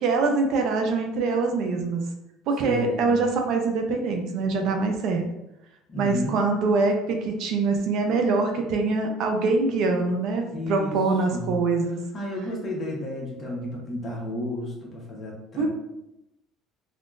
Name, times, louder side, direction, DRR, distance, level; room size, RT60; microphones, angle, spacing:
voice 1, 0.0-2.0 2.5-5.2 6.0-12.0 15.6-15.7, right 3 dB, 65° right, 3 dB, 0.5 m, -24 dB
voice 2, 2.6-3.3 5.9-6.4 10.5-11.0 11.3-11.6 12.1-15.7, left 1 dB, 30° left, -2 dB, 1.0 m, -32 dB
3.5 x 2.3 x 2.5 m, 0.87 s
cardioid pair, 125°, 0 cm